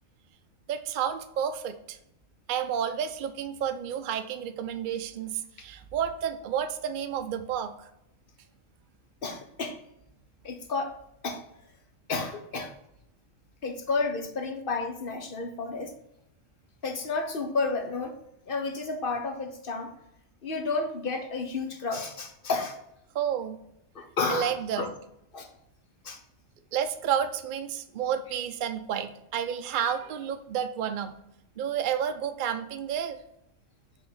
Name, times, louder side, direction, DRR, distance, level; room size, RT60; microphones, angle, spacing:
voice 1, 0.7-2.0 2.5-7.9 23.1-23.6 24.3-24.9 26.7-31.1 31.6-33.2, right 8 dB, 70° right, 8 dB, 0.4 m, -30 dB
voice 2, 9.2-9.7 10.4-10.9 11.2-11.4 12.1-12.7 13.6-15.9 16.8-18.2 18.5-19.9 20.4-22.8 23.9-24.9 25.3-25.5 26.0-26.2, left 3 dB, 45° left, 4 dB, 0.9 m, -31 dB
5.2 x 3.6 x 5.5 m, 0.82 s
omnidirectional pair, 1.4 m